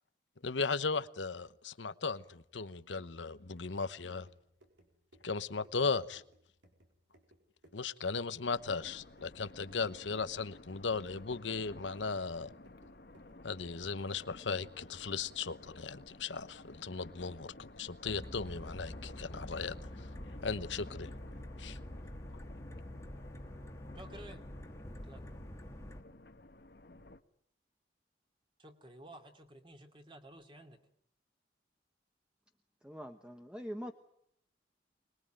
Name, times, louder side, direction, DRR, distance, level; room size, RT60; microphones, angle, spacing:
voice 1, 0.4-4.3 5.2-6.2 7.7-12.5 13.4-20.1 20.4-21.1 21.6-21.8, left 4 dB, 85° left, 14 dB, 1.0 m, -37 dB
sound 1, 3.5-16.0, right 1 dB, 85° right, 4.6 m, -65 dB
sound 2, 8.5-27.2, left 2 dB, 60° left, 1.2 m, -54 dB
sound 3, 18.0-26.0, left 1 dB, 15° left, 1.6 m, -46 dB
voice 2, 23.9-24.4 24.9-25.3 28.6-30.8, right 1 dB, 25° right, 5 dB, 2.5 m, -53 dB
voice 3, 32.8-33.9, equal, 5° right, 5 dB, 1.1 m, -43 dB
25.0 x 21.5 x 9.0 m, 0.71 s
head